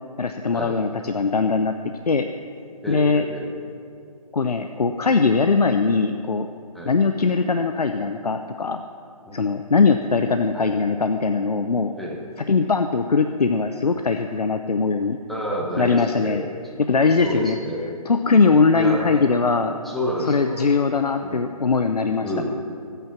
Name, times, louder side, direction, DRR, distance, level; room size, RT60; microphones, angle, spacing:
voice 1, 0.2-1.7 2.1-2.3 2.9-3.2 4.3-6.5 6.8-8.8 9.3-11.9 12.5-15.2 15.8-16.4 16.9-17.6 18.0-19.7 20.2-22.3, left 4 dB, 90° left, 7 dB, 0.9 m, -20 dB
voice 2, 2.8-3.5 6.7-6.9 9.2-9.4 10.5-10.7 12.0-12.2 15.3-16.6 17.2-18.0 18.7-19.2 19.8-20.6 21.2-21.4 22.2-22.5, equal, ahead, -3 dB, 1.0 m, -29 dB
23.5 x 9.3 x 5.9 m, 2.5 s
hypercardioid pair, 165°, 20 cm